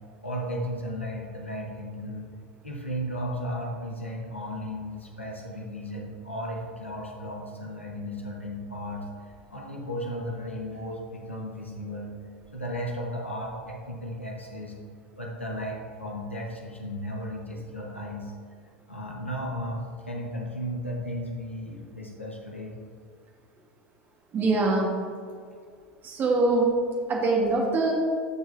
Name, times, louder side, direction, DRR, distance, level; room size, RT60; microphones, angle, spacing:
voice 1, 0.2-2.3 2.6-12.1 12.5-14.7 15.2-18.3 18.9-22.8, equal, 85° left, -1 dB, 1.3 m, -35 dB
voice 2, 24.3-24.9 26.0-26.7 27.1-27.9, right 3 dB, 30° right, -1 dB, 1.5 m, -23 dB
13.5 x 4.6 x 2.6 m, 2.2 s
figure-of-eight pair, 85°, 6 cm